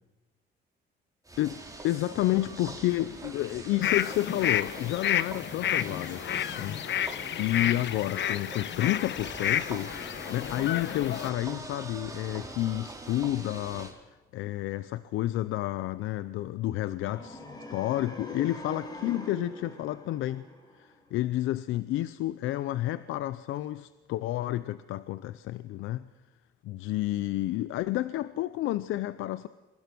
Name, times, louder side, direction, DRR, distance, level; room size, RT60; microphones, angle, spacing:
sound 1, 1.2-13.9, right 2 dB, 15° right, 4.3 m, -44 dB
voice 1, 1.4-6.8 7.4-9.9 10.3-14.0 14.3-17.4 17.7-20.4 20.8-26.1 26.6-29.5, left 15 dB, 90° left, 0.7 m, -30 dB
sound 2, 3.8-11.3, left 10 dB, 65° left, 1.1 m, -31 dB
sound 3, 17.0-21.1, equal, 20° left, 7.9 m, -44 dB
28.0 x 23.5 x 6.2 m
cardioid pair, 90°, 20 cm